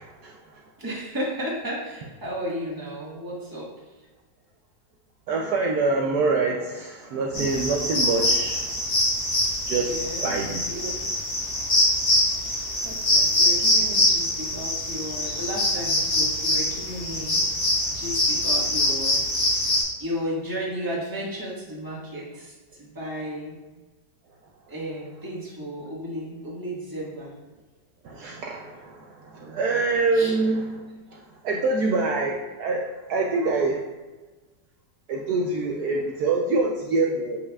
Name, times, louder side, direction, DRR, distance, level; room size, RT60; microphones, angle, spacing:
voice 1, 0.0-0.6 5.3-8.8 9.7-10.7 28.0-30.7 31.1-33.8 35.1-37.4, right 3 dB, 70° right, 0 dB, 1.1 m, -25 dB
voice 2, 0.8-3.7 9.4-9.5 9.8-10.3 10.6-11.1 12.4-12.6 12.8-17.4 17.9-19.6 20.0-23.6 24.7-27.3 29.3-29.6 30.1-30.4, equal, 10° right, -6 dB, 1.4 m, -34 dB
sound 1, 7.3-19.8, left 1 dB, 90° left, 2.7 m, -24 dB
8.0 x 5.3 x 2.3 m, 1.2 s
omnidirectional pair, 1.9 m